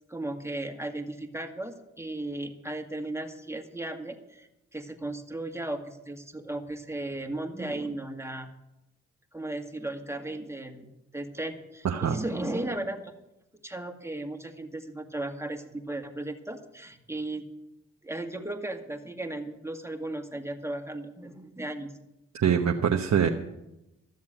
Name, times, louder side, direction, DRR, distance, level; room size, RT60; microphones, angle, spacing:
voice 1, 0.1-8.5 9.3-10.9 11.1-13.0 13.6-17.4 18.0-21.9, right 2 dB, 10° right, 5 dB, 2.0 m, -36 dB
voice 2, 11.8-12.2 22.3-23.3, right 8 dB, 55° right, 3 dB, 1.0 m, -24 dB
13.5 x 7.3 x 8.9 m, 0.92 s
hypercardioid pair, 40°, 34 cm